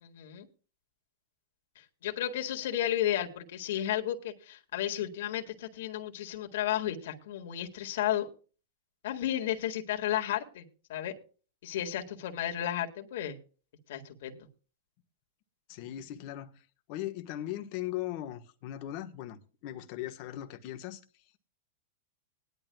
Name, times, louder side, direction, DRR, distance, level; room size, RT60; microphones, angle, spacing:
voice 1, 0.0-0.5 2.0-8.3 9.0-10.6 10.9-11.2 11.6-13.4 13.9-14.5, left 11 dB, 70° left, 1.9 m, -33 dB
voice 2, 15.7-16.5 16.9-21.0, left 13 dB, 50° left, 1.3 m, -38 dB
20.0 x 11.0 x 2.3 m
hypercardioid pair, 130°, 0 cm